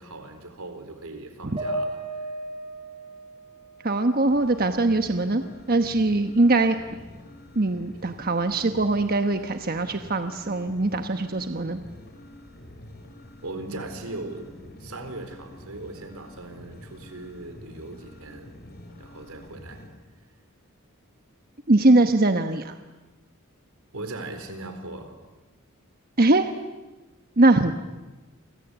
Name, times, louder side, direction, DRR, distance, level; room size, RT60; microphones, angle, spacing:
voice 1, 0.0-2.3 13.4-18.5 19.0-19.8 23.9-25.1, right 2 dB, 85° right, 7 dB, 4.2 m, -39 dB
sound 1, 1.6-5.0 5.4-6.4, right 1 dB, 25° right, 7.0 m, -36 dB
voice 2, 3.8-5.4 5.7-6.8 7.5-11.8 21.7-22.7 26.2-26.5 27.4-27.7, right 2 dB, 45° right, 7 dB, 1.2 m, -21 dB
sound 2, 4.3-19.9, left 1 dB, 45° left, 4.7 m, -47 dB
29.5 x 24.5 x 8.2 m, 1.2 s
head